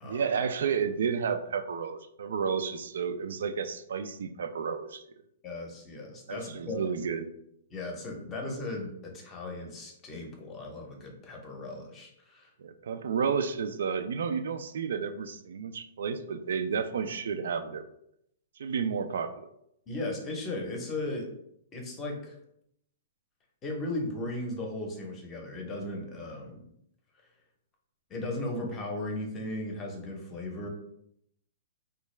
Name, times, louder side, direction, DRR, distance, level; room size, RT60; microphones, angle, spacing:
voice 1, 0.0-5.0 6.3-7.3 12.6-17.9 18.6-19.5, right 6 dB, 75° right, 9 dB, 0.3 m, -31 dB
voice 2, 5.4-6.8 7.7-12.5 19.9-21.3 21.7-22.4 23.6-26.7 28.1-30.7, left 2 dB, 20° left, 1 dB, 0.7 m, -36 dB
3.7 x 2.3 x 3.1 m, 0.76 s
hypercardioid pair, 160°, 0 cm